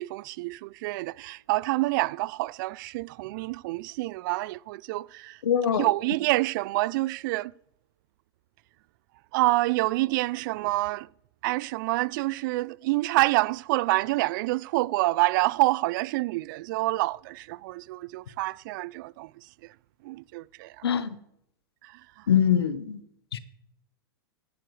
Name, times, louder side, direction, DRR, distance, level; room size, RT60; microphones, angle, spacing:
voice 1, 0.0-5.4 5.8-7.5 9.3-11.1 11.4-19.3 20.0-20.7 21.8-21.9, right 20 dB, 55° right, 0.4 m, -27 dB
voice 2, 5.4-5.9 20.8-21.2 22.3-23.0 23.3-23.4, left 8 dB, 80° left, 1.1 m, -23 dB
15.0 x 11.0 x 3.3 m
hypercardioid pair, 110°, 13 cm